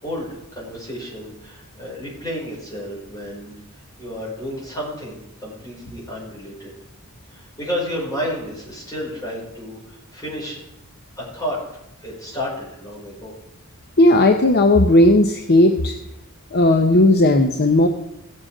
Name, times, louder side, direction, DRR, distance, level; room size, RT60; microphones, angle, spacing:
voice 1, 0.0-3.5 4.0-6.7 7.3-10.6 11.2-11.6 12.0-13.3, equal, 15° left, -6 dB, 5.7 m, -31 dB
voice 2, 14.0-16.0 16.5-17.9, left 1 dB, 45° left, 5 dB, 0.8 m, -15 dB
17.0 x 7.7 x 5.0 m, 0.83 s
head